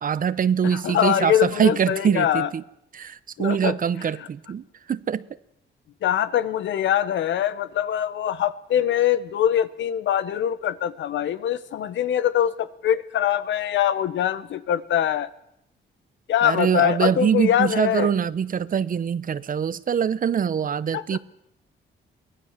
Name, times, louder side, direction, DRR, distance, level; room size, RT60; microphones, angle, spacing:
voice 1, 0.0-2.6 2.9-4.6 4.9-5.2 16.4-21.2, right 7 dB, 45° right, 0.8 m, -23 dB
voice 2, 0.6-2.5 3.4-3.8 4.2-4.3 6.0-15.3 16.3-18.1 20.9-21.2, left 10 dB, 80° left, 1.1 m, -23 dB
24.0 x 16.0 x 7.4 m
cardioid pair, 105°, 19 cm